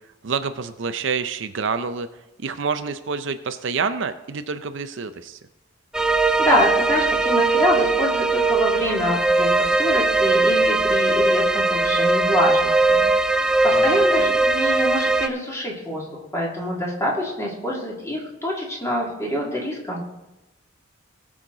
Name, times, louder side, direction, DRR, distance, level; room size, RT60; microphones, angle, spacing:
voice 1, 0.2-2.1 2.4-5.4 13.7-14.3, right 5 dB, 60° right, 10 dB, 0.5 m, -28 dB
sound 1, 5.9-15.3, right 2 dB, 5° right, 0.3 m, -20 dB
voice 2, 6.4-16.1 16.3-20.0, equal, 15° left, -3 dB, 2.4 m, -25 dB
19.0 x 6.4 x 3.9 m, 0.95 s
head